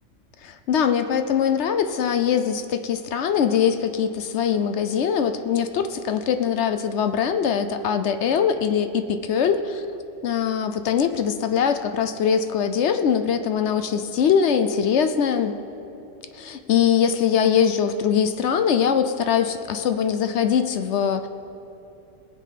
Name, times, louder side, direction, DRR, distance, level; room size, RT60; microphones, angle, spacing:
voice 1, 0.4-9.8 10.2-15.5 16.3-21.3, left 7 dB, 65° left, 9 dB, 0.9 m, -22 dB
20.0 x 7.6 x 5.1 m, 2.8 s
omnidirectional pair, 1.3 m